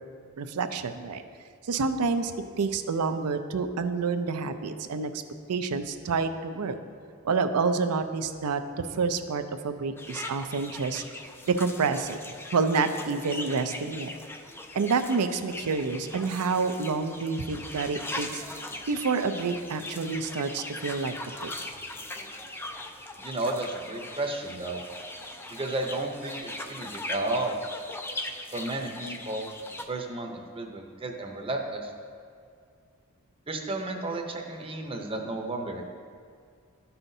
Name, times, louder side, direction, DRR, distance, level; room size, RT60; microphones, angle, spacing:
voice 1, 0.4-1.2 1.7-5.1 5.5-6.8 7.2-8.6 9.0-11.0 11.5-12.2 12.5-14.1 14.7-18.4 18.9-21.1 21.4-21.5, right 4 dB, 85° right, 9 dB, 0.5 m, -28 dB
sound 1, 10.0-29.9, left 1 dB, 10° left, 0.3 m, -40 dB
voice 2, 23.2-24.8 25.5-27.6 28.5-29.5 29.9-31.9 33.5-35.8, right 2 dB, 25° right, 2 dB, 0.7 m, -32 dB
12.5 x 5.6 x 2.7 m, 2.3 s
head